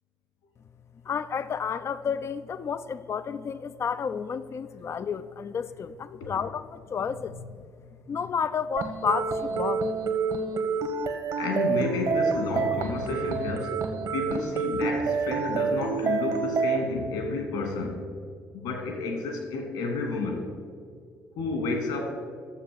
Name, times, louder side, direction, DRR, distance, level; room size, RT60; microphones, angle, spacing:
voice 1, 1.1-7.4 8.1-9.8, left 6 dB, 40° left, 13 dB, 0.5 m, -31 dB
sound 1, 8.8-16.8, right 5 dB, 55° right, 1.3 m, -28 dB
voice 2, 11.4-13.7 14.1-18.0 18.5-20.5 21.4-22.1, left 3 dB, 70° left, 3 dB, 2.6 m, -30 dB
12.0 x 7.3 x 7.1 m, 2.1 s
hypercardioid pair, 55°, 7 cm